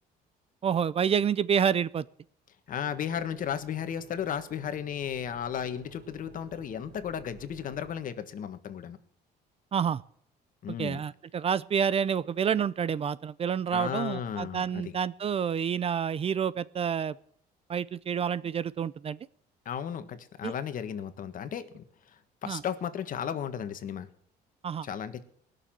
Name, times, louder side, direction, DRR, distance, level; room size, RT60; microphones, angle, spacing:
voice 1, 0.6-2.0 9.7-10.0 10.8-17.2 17.7-19.2 20.4-20.5 22.5-22.6 24.6-24.9, right 7 dB, 35° right, 20 dB, 0.5 m, -28 dB
voice 2, 2.7-9.0 10.6-11.0 13.7-14.9 19.6-21.8 22.4-24.1 24.8-25.2, left 8 dB, 55° left, 10 dB, 1.5 m, -34 dB
sound 1, 2.8-7.9, right 6 dB, 50° right, 3.8 m, -52 dB
19.5 x 6.9 x 7.5 m, 0.66 s
cardioid pair, 110°, 17 cm